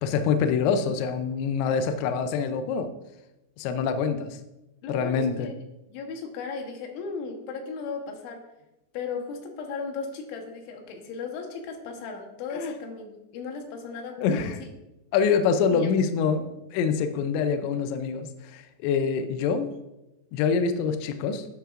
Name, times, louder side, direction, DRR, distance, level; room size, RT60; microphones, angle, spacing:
voice 1, 0.0-2.9 3.6-4.4 4.9-5.5 12.5-12.7 14.2-14.6 15.1-19.7 20.3-21.5, left 6 dB, 90° left, 8 dB, 2.6 m, -25 dB
voice 2, 4.8-5.5 5.9-8.4 8.9-14.5 15.7-16.0, left 5 dB, 75° left, 3 dB, 3.3 m, -36 dB
10.5 x 8.8 x 2.5 m, 0.95 s
omnidirectional pair, 5.9 m